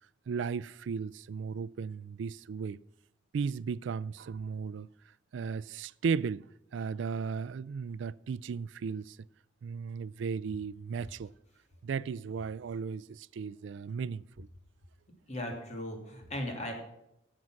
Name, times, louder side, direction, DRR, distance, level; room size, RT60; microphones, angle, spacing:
voice 1, 0.3-2.8 3.3-4.9 5.3-6.4 6.7-9.2 9.6-11.3 11.8-14.5, right 5 dB, 75° right, 0.4 m, -35 dB
voice 2, 15.3-16.7, left 1 dB, 40° left, 2.7 m, -37 dB
11.0 x 7.6 x 6.3 m
head